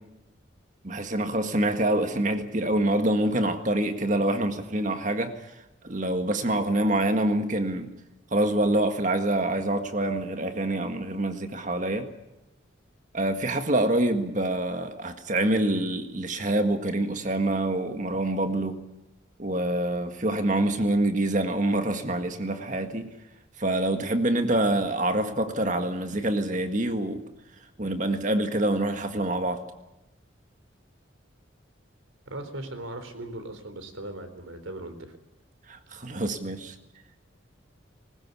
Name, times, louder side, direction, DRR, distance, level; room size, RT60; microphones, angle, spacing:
voice 1, 0.8-5.3 5.8-7.9 8.3-12.1 13.1-18.8 19.4-23.1 23.6-27.2 27.8-29.6 35.7-36.8, right 1 dB, 40° right, 7 dB, 1.8 m, -26 dB
voice 2, 32.3-35.2, right 1 dB, 85° right, 8 dB, 3.9 m, -38 dB
21.0 x 19.5 x 8.4 m, 0.94 s
head